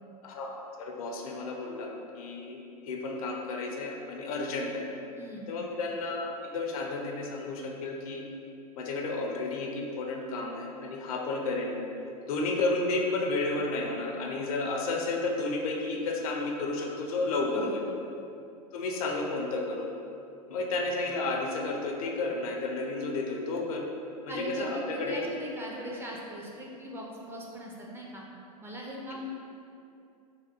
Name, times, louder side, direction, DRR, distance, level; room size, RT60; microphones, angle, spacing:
voice 1, 0.2-4.9 5.5-8.3 8.8-11.9 12.2-17.8 18.7-19.9 20.5-23.9 24.2-25.2, left 3 dB, 65° left, 1 dB, 0.5 m, -32 dB
voice 2, 5.2-5.5 17.5-17.8 24.3-28.2 28.6-29.3, right 1 dB, 10° right, -3 dB, 0.4 m, -39 dB
3.3 x 2.2 x 2.7 m, 2.6 s
hypercardioid pair, 90°, 20 cm